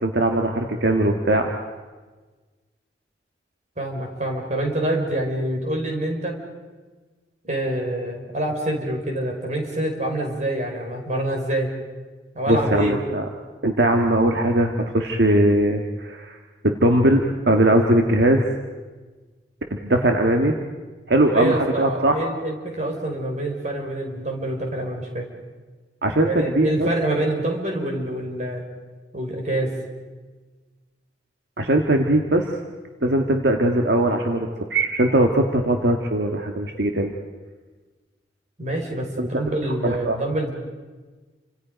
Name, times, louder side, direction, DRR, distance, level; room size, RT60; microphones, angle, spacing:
voice 1, 0.0-1.5 12.5-13.2 13.6-16.4 16.6-18.5 19.8-20.6 21.1-22.2 26.0-26.9 31.6-32.5 33.0-37.1 39.2-39.4 39.8-40.2, right 1 dB, 70° right, 3 dB, 1.6 m, -20 dB
voice 2, 3.8-6.3 7.4-11.7 12.3-13.0 21.2-25.3 26.2-28.6 29.1-29.7 38.6-40.5, right 1 dB, 40° right, 1 dB, 4.7 m, -26 dB
29.5 x 26.0 x 5.2 m, 1.3 s
head